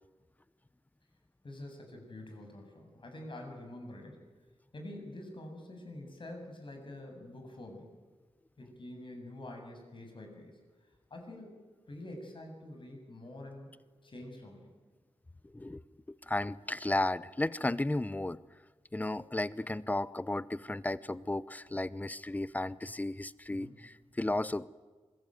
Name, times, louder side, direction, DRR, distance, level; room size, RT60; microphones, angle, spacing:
voice 1, 1.4-4.2 4.7-7.9 8.6-10.6 11.1-11.6 11.9-13.7 14.0-14.7 23.5-23.8, left 1 dB, 50° left, 3 dB, 7.6 m, -46 dB
voice 2, 15.4-18.4 18.9-24.7, left 2 dB, 15° left, 18 dB, 0.7 m, -34 dB
27.0 x 22.5 x 9.3 m, 1.4 s
wide cardioid pair, 135°, 11 cm